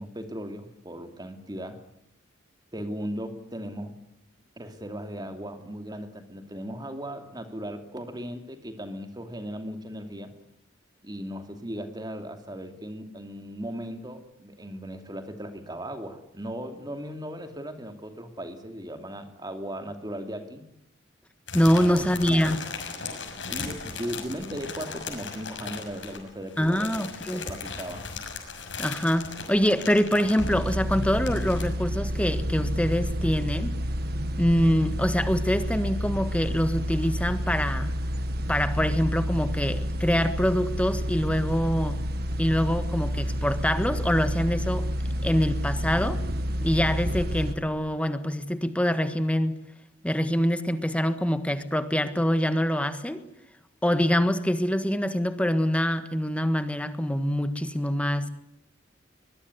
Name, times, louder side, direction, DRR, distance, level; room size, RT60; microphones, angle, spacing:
voice 1, 0.0-1.8 2.7-4.0 4.6-10.3 11.0-20.6 21.8-22.6 23.5-27.0 27.3-28.1, equal, 20° right, 7 dB, 2.7 m, -37 dB
sound 1, 21.5-31.6, left 4 dB, 70° left, 6.4 m, -38 dB
voice 2, 21.5-22.6 26.6-27.4 28.8-33.7 34.4-37.9 38.5-42.0 42.4-44.9 45.2-46.2 46.6-49.6 50.0-53.2 53.8-58.3, equal, 5° left, 10 dB, 1.6 m, -25 dB
sound 2, 30.4-47.5, equal, 55° right, 1.7 m, -29 dB
22.5 x 21.0 x 9.7 m, 0.78 s
head